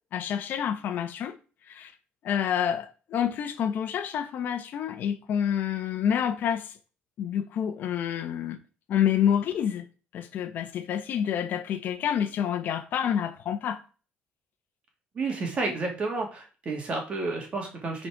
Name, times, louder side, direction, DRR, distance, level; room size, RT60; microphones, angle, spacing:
voice 1, 0.1-1.4 1.7-1.9 2.2-6.7 7.2-8.6 8.9-9.9 10.1-13.8, left 9 dB, 50° left, 1.2 m, -28 dB
voice 2, 15.1-18.1, right 3 dB, 30° right, 2.4 m, -31 dB
9.7 x 4.4 x 4.8 m
cardioid pair, 175°, 4 cm